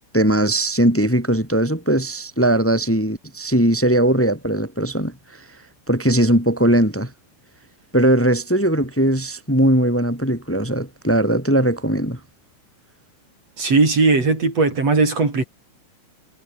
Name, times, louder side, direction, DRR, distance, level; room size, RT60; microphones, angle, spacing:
voice 1, 0.1-5.4 5.9-7.1 7.9-12.2, right 1 dB, 5° left, 3.2 m, -19 dB
voice 2, 13.6-15.4, right 3 dB, 40° right, 6.3 m, -18 dB
omnidirectional pair, 4.5 m